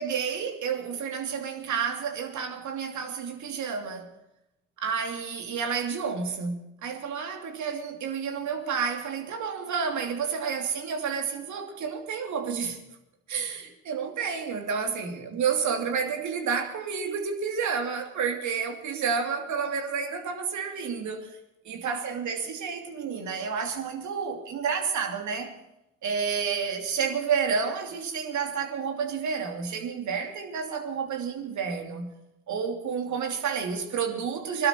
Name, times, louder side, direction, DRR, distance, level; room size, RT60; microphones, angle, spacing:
voice 1, 0.0-4.1 4.8-12.8 13.3-21.4 21.7-25.6 26.0-32.1 32.5-34.7, right 6 dB, 55° right, 4 dB, 2.9 m, -30 dB
22.0 x 12.0 x 4.5 m, 0.88 s
hypercardioid pair, 55°, 35 cm